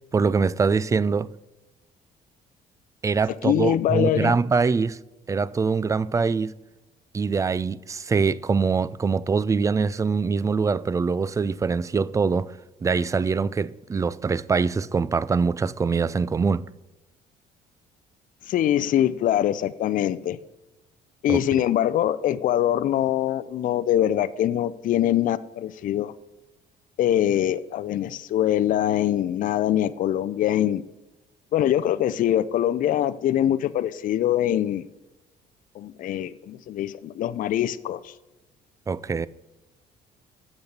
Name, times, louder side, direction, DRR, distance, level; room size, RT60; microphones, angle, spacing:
voice 1, 0.1-1.3 3.0-5.0 5.3-6.5 7.1-12.5 12.8-16.7 21.3-21.7 38.9-39.3, right 5 dB, 20° right, 0.3 m, -23 dB
voice 2, 3.3-4.4 18.5-20.4 21.2-26.1 27.0-30.8 31.5-34.9 35.8-38.1, left 11 dB, 55° left, 0.5 m, -23 dB
8.1 x 6.8 x 7.3 m
cardioid pair, 110°, 17 cm